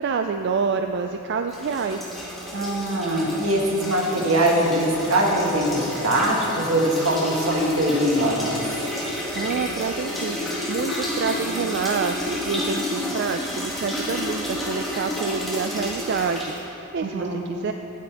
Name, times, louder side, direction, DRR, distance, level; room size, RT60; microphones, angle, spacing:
voice 1, 0.0-2.1 9.3-17.7, right 5 dB, 55° right, 6 dB, 0.3 m, -27 dB
sound 1, 1.5-16.6, left 1 dB, ahead, 2.1 m, -30 dB
voice 2, 2.5-8.6 17.0-17.4, right 1 dB, 80° right, -1 dB, 1.7 m, -22 dB
14.0 x 9.4 x 3.5 m, 2.9 s
head